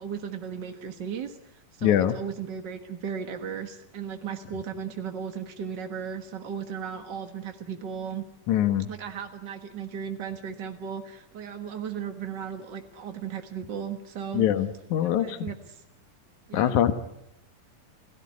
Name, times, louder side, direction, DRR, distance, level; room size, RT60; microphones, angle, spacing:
voice 1, 0.0-8.2 8.9-14.5 15.0-15.8 16.5-16.8, right 7 dB, 50° right, 6 dB, 1.3 m, -36 dB
voice 2, 1.8-2.1 8.5-8.9 14.3-15.5 16.5-16.9, left 11 dB, 65° left, 10 dB, 2.4 m, -23 dB
29.5 x 17.5 x 9.6 m, 0.81 s
omnidirectional pair, 4.1 m